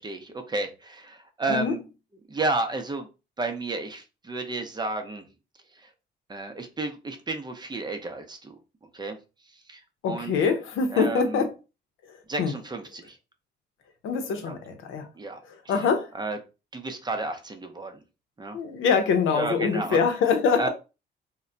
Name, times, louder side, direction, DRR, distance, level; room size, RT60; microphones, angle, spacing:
voice 1, 0.0-1.8 2.3-3.1 3.4-5.3 5.7-5.9 6.3-8.6 8.9-9.2 9.5-10.3 10.9-11.5 12.3-13.2 14.4-14.6 15.1-15.4 16.1-16.4 16.7-18.0 18.4-18.6 19.3-20.0 20.6-20.7, right 2 dB, 20° right, 0.6 m, -32 dB
voice 2, 10.0-11.5 12.0-12.5 14.0-15.1 15.7-16.1 18.5-20.7, left 5 dB, 85° left, 0.7 m, -24 dB
2.2 x 2.2 x 3.7 m
cardioid pair, 90°, 20 cm